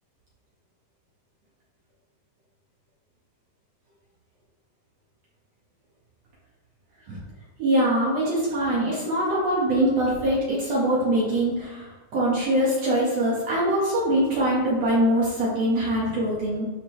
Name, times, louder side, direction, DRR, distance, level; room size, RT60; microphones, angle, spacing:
voice 1, 7.6-16.7, right 1 dB, 55° right, -6 dB, 2.5 m, -23 dB
12.0 x 4.2 x 3.3 m, 1.3 s
omnidirectional pair, 3.7 m